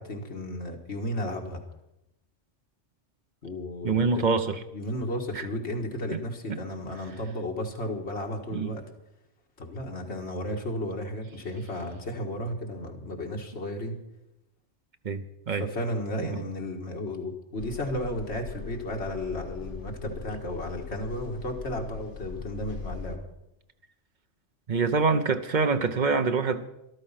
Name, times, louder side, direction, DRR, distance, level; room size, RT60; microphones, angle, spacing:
voice 1, 0.0-1.6 3.4-4.2 4.7-8.8 9.6-14.0 15.5-23.2, left 1 dB, 65° left, 2 dB, 2.1 m, -34 dB
voice 2, 3.8-4.6 5.3-5.5 6.1-6.2 6.5-6.6 8.5-8.8 15.0-15.6 16.2-16.4 24.7-26.7, right 4 dB, 45° right, 9 dB, 0.8 m, -26 dB
sound 1, 17.6-23.2, left 5 dB, 80° left, 1.5 m, -40 dB
13.5 x 12.5 x 5.8 m, 0.87 s
omnidirectional pair, 1.2 m